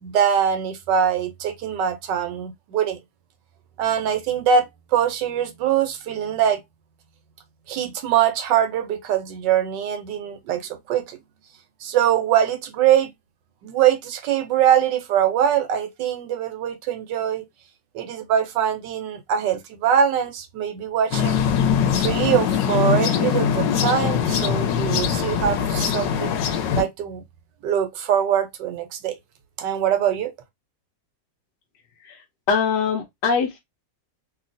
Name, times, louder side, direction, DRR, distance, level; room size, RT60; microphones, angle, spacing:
voice 1, 0.0-3.0 3.8-4.7 4.9-6.6 7.7-11.2 11.8-13.1 13.6-17.4 17.9-21.4 21.9-26.4 26.8-27.2 27.6-29.2 29.6-30.3, right 9 dB, 75° right, 1.3 m, -22 dB
sound 1, 21.1-26.8, left 7 dB, 90° left, 1.3 m, -22 dB
voice 2, 32.5-33.6, left 5 dB, 70° left, 1.3 m, -22 dB
3.0 x 2.7 x 2.5 m
omnidirectional pair, 2.0 m